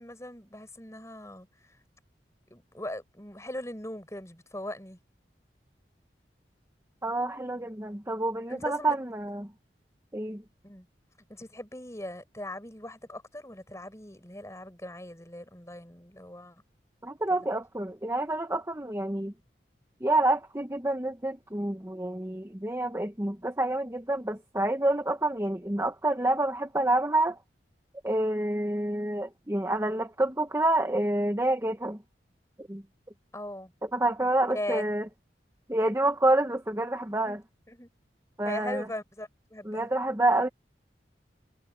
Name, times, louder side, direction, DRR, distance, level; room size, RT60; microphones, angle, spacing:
voice 1, 0.0-1.8 2.5-5.0 8.5-9.0 10.6-10.9 11.3-16.6 17.3-17.4 33.3-33.7 34.2-34.9 37.1-37.4 37.7-37.9 38.4-39.9, left 1 dB, 15° left, 6.7 m, -39 dB
voice 2, 7.0-9.5 10.1-10.4 17.0-19.3 20.0-27.4 28.0-32.0 32.7-32.8 33.9-35.0 35.7-37.4 38.4-38.8 39.7-40.5, right 1 dB, 15° right, 1.0 m, -28 dB
head